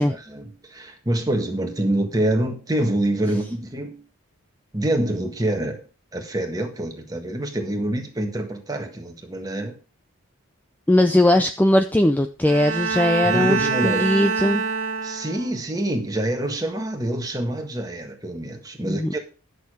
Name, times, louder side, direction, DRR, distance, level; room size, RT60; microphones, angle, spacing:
voice 1, 0.0-4.0 4.7-5.8 6.1-9.8 13.2-14.1 15.0-19.2, right 1 dB, 15° right, 1.6 m, -26 dB
voice 2, 10.9-14.6 18.9-19.2, left 1 dB, 10° left, 0.4 m, -19 dB
Bowed string instrument, 12.4-15.6, right 5 dB, 70° right, 1.8 m, -25 dB
11.5 x 6.7 x 4.9 m
head